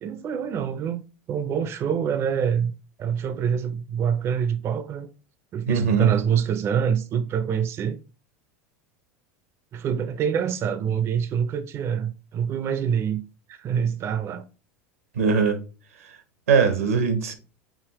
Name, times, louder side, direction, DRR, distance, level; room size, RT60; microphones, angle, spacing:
voice 1, 0.0-1.0 1.3-2.7 3.0-5.1 5.5-8.0 9.7-13.2 13.5-14.5, right 7 dB, 35° right, 0.4 m, -25 dB
voice 2, 5.7-6.1 15.1-15.6 16.5-17.3, right 5 dB, 90° right, 0.8 m, -20 dB
4.9 x 2.8 x 2.9 m
hypercardioid pair, 95°, 7 cm